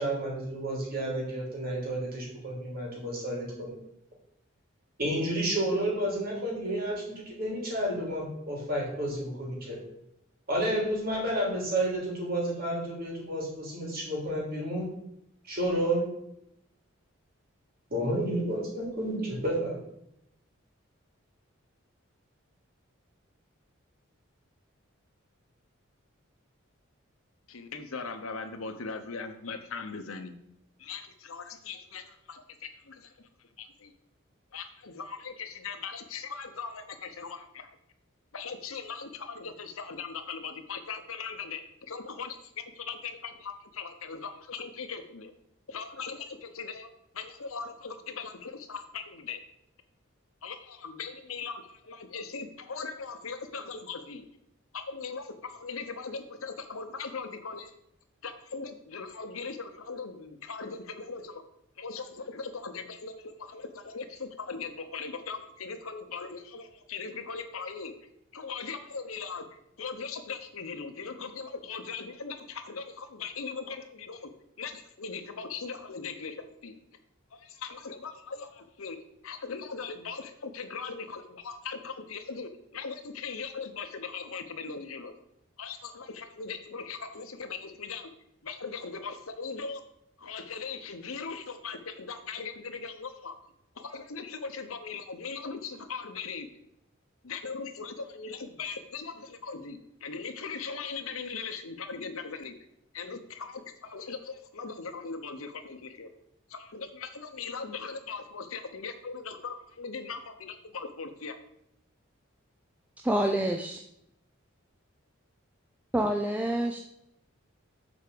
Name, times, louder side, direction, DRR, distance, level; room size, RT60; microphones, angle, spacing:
voice 1, 0.0-3.7 5.0-9.8 10.5-14.9 15.4-16.1 17.9-19.8, right 1 dB, 45° right, -3 dB, 3.2 m, -31 dB
voice 2, 27.5-30.4 30.8-33.9 34.5-37.7 38.3-41.6 41.9-45.3 45.7-46.9 47.1-49.4 50.4-54.3 54.7-57.7 58.2-61.4 61.8-67.9 68.3-74.3 74.6-76.7 77.3-79.0 79.2-85.1 85.6-88.1 88.4-89.8 90.2-93.4 93.7-96.5 97.2-102.5 102.9-106.1 106.5-111.4, left 5 dB, 85° left, 8 dB, 1.0 m, -39 dB
voice 3, 113.0-113.8 115.9-116.8, right 1 dB, 5° right, 2 dB, 0.4 m, -27 dB
7.3 x 4.7 x 6.8 m, 0.79 s
head